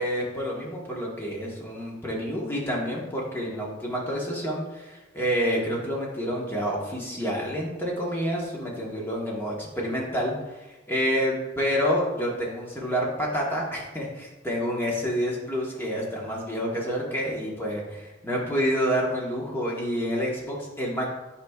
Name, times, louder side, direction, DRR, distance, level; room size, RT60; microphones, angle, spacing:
voice 1, 0.0-21.1, equal, 10° left, -3 dB, 1.3 m, -28 dB
9.8 x 5.1 x 2.4 m, 1.1 s
head